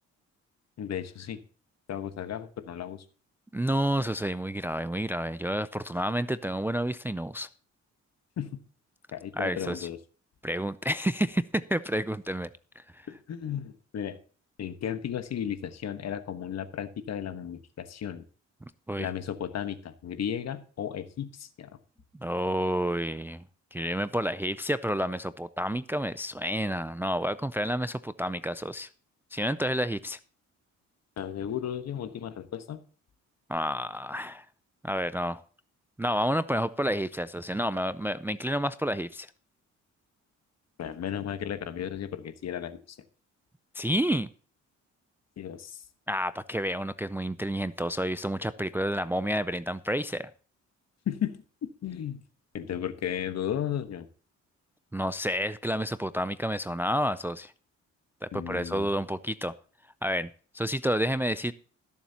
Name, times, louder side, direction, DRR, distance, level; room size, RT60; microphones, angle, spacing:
voice 1, 0.8-1.4 1.9-3.0 8.4-8.6 9.1-10.0 13.1-14.2 14.6-18.2 19.0-21.7 31.2-32.8 40.8-43.0 45.4-45.8 51.1-52.2 52.5-54.1 58.3-58.9, left 9 dB, 60° left, 1.2 m, -34 dB
voice 2, 3.5-7.5 9.3-9.9 10.4-12.5 12.8-13.1 18.9-19.1 22.2-28.9 29.3-30.2 33.5-34.5 34.8-35.4 36.0-39.3 43.7-44.3 46.1-50.3 54.9-57.5 58.2-59.5 60.0-60.3 60.5-61.5, equal, 5° right, 0.4 m, -30 dB
20.5 x 7.3 x 2.8 m
cardioid pair, 90°, 30 cm